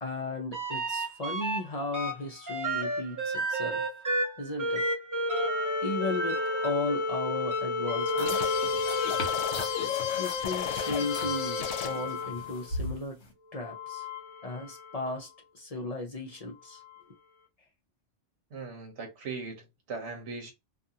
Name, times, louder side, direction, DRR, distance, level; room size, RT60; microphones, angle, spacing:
voice 1, 0.0-3.9 4.4-4.8 5.8-8.6 10.2-13.2 13.5-14.1 14.4-15.3 15.5-16.8, left 2 dB, 45° left, 0.5 m, -35 dB
sound 1, 0.5-1.6 1.9-12.7 13.6-15.1 16.8-16.9, left 1 dB, 25° right, 0.4 m, -31 dB
sound 2, 8.0-13.3, left 1 dB, 65° left, 1.2 m, -40 dB
sound 3, 8.3-12.2, left 7 dB, 90° left, 0.9 m, -34 dB
voice 2, 18.5-20.5, right 4 dB, 65° right, 1.0 m, -39 dB
2.5 x 2.4 x 2.7 m
omnidirectional pair, 1.2 m